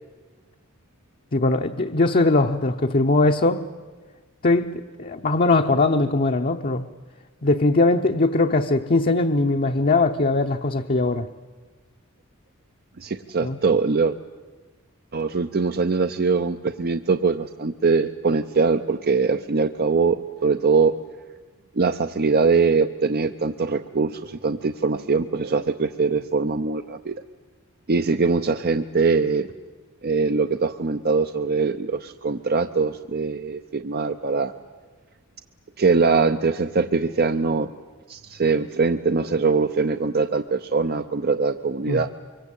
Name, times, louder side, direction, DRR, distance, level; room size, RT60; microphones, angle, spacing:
voice 1, 1.3-3.7 4.4-6.9 7.4-11.3 13.4-13.6 41.9-42.0, left 2 dB, 40° left, 3 dB, 0.8 m, -20 dB
voice 2, 13.0-14.2 15.1-21.0 21.8-27.2 27.9-29.5 30.0-34.5 35.8-37.7 38.1-42.1, right 4 dB, 45° right, 9 dB, 0.7 m, -22 dB
25.5 x 23.5 x 8.3 m, 1.3 s
head